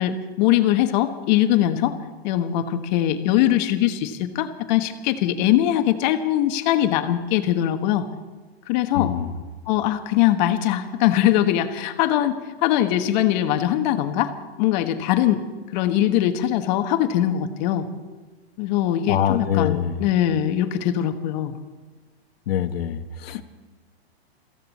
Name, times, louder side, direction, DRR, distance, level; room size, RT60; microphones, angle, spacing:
voice 1, 0.0-2.0 2.2-8.0 8.7-9.1 9.7-14.3 14.6-15.5 15.7-17.9 18.6-21.5, left 12 dB, 45° left, 8 dB, 1.3 m, -21 dB
voice 2, 8.9-9.3 19.1-20.0 22.5-23.4, left 9 dB, 70° left, 10 dB, 1.2 m, -24 dB
22.5 x 15.5 x 4.2 m, 1.3 s
hypercardioid pair, 140°, 31 cm